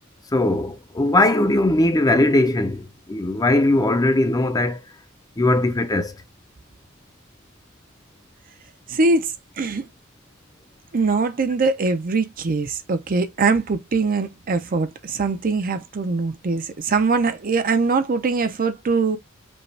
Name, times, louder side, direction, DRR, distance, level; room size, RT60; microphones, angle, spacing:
voice 1, 0.3-4.8 5.4-6.1, left 2 dB, 15° left, 0.5 m, -19 dB
voice 2, 8.9-9.9 10.9-19.2, right 4 dB, 40° right, 0.5 m, -22 dB
5.2 x 2.3 x 3.2 m
head